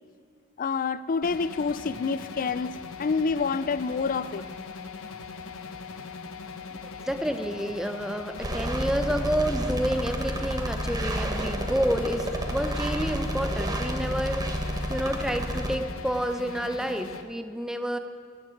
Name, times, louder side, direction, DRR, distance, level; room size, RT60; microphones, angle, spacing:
voice 1, 0.6-4.4, left 5 dB, 40° left, 16 dB, 0.4 m, -28 dB
sound 1, 1.2-17.2, left 5 dB, 70° left, 1.1 m, -40 dB
voice 2, 6.8-18.0, equal, 5° right, 7 dB, 0.8 m, -29 dB
sound 2, 8.4-15.7, equal, 20° right, 1.2 m, -30 dB
14.0 x 7.8 x 9.9 m, 2.2 s
head